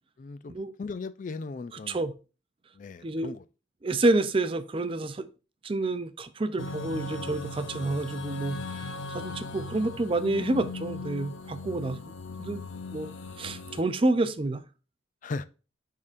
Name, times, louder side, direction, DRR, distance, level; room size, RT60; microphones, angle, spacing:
voice 1, 0.2-0.5 0.8-2.0 2.7-3.4 9.0-9.2 11.7-12.0 15.2-15.4, left 3 dB, 40° left, 0.3 m, -38 dB
voice 2, 3.0-3.3 3.8-5.3 5.6-12.0 12.4-12.6 12.9-13.1 13.4-14.6, right 2 dB, 25° right, 0.5 m, -28 dB
sound 1, 6.6-13.8, left 3 dB, 70° left, 0.7 m, -38 dB
10.5 x 3.7 x 2.5 m
head